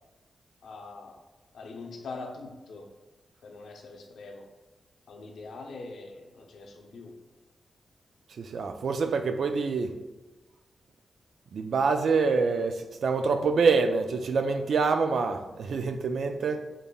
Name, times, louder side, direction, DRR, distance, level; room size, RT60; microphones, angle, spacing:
voice 1, 0.6-1.2 1.5-2.9 3.4-4.5 5.1-7.1, left 3 dB, 90° left, 2 dB, 0.6 m, -43 dB
voice 2, 8.4-9.9 11.5-16.6, right 4 dB, 65° right, 7 dB, 0.3 m, -26 dB
5.3 x 4.0 x 2.3 m, 1.1 s
wide cardioid pair, 175°, 0 cm